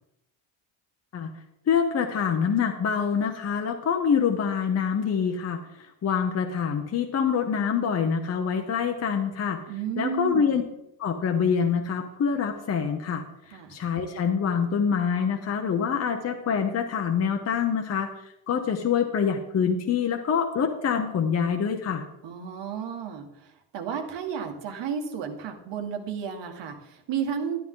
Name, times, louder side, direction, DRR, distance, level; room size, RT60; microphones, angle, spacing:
voice 1, 1.7-9.6 10.0-10.6 11.0-22.0, left 7 dB, 35° left, 4 dB, 0.9 m, -26 dB
voice 2, 9.7-10.6 13.5-13.8 22.2-27.6, right 7 dB, 65° right, 4 dB, 1.7 m, -33 dB
12.0 x 11.5 x 3.8 m, 0.86 s
cardioid pair, 155°, 46 cm